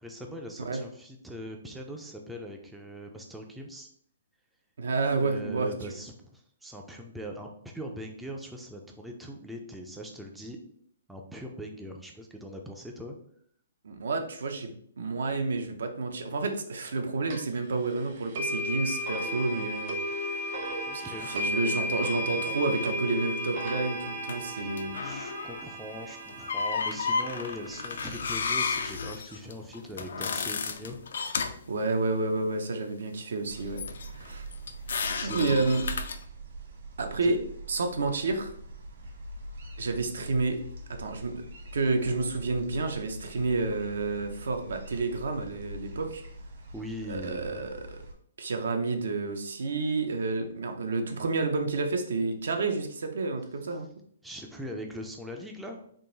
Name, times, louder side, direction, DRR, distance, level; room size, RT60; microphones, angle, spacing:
voice 1, 0.0-3.9 5.2-10.6 11.1-13.2 20.9-21.3 24.4-24.7 25.0-31.0 34.9-35.9 37.2-37.3 46.7-47.7 54.2-55.8, equal, 5° right, 1 dB, 0.4 m, -41 dB
voice 2, 4.8-5.9 13.8-20.3 20.9-25.0 31.7-33.8 34.1-34.4 35.2-35.8 37.0-37.4 37.7-38.5 39.8-40.6 40.9-41.4 41.7-46.2 47.1-48.0 48.4-53.9, right 3 dB, 80° right, 5 dB, 0.7 m, -30 dB
sound 1, 17.3-17.4 18.3-28.4, equal, 45° right, 0.8 m, -34 dB
sound 2, 21.2-21.5 24.3-24.4 24.8-25.7 26.3-31.7 33.8-36.2, left 5 dB, 70° left, 0.4 m, -33 dB
sound 3, 33.5-48.1, right 2 dB, 60° right, 1.3 m, -43 dB
3.8 x 2.5 x 3.9 m, 0.62 s
hypercardioid pair, 165°, 0 cm